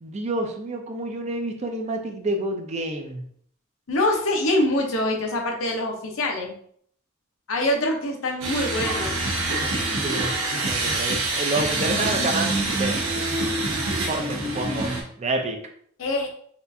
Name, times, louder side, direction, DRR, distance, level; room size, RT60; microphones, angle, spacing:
voice 1, 0.0-3.2 10.0-10.4 10.7-13.0 14.1-14.9 15.2-15.6, right 2 dB, 35° right, 4 dB, 0.5 m, -28 dB
voice 2, 3.9-6.6 7.5-9.3 16.0-16.3, left 1 dB, 75° left, 1 dB, 0.7 m, -24 dB
sound 1, 8.4-15.0, right 2 dB, 90° right, 0.9 m, -25 dB
4.2 x 2.5 x 2.6 m, 0.62 s
head